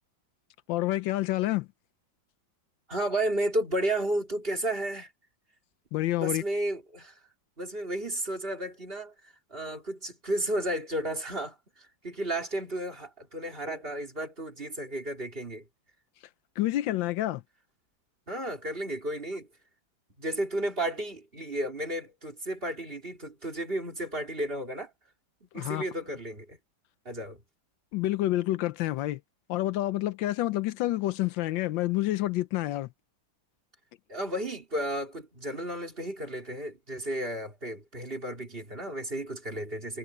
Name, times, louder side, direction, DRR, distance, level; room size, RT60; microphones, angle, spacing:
voice 1, 0.7-1.7 5.9-6.4 16.6-17.4 25.5-25.8 27.9-29.2 29.5-32.9, left 15 dB, 85° left, 1.4 m, -28 dB
voice 2, 2.9-5.1 6.2-7.2 7.6-9.1 9.5-15.6 18.3-19.5 20.2-24.9 25.4-26.6 27.1-27.4 34.1-40.0, right 1 dB, 30° right, 3.7 m, -33 dB
omnidirectional pair, 2.1 m